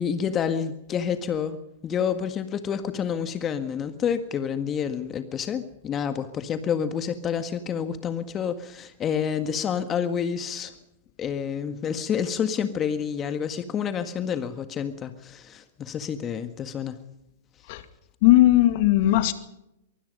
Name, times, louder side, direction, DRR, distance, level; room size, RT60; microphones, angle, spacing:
voice 1, 0.0-1.6 1.8-10.7 11.2-17.0, left 7 dB, 25° left, 9 dB, 1.7 m, -28 dB
voice 2, 18.2-19.3, left 15 dB, 50° left, 11 dB, 2.2 m, -17 dB
24.0 x 24.0 x 5.4 m, 0.84 s
hypercardioid pair, 105°, 0 cm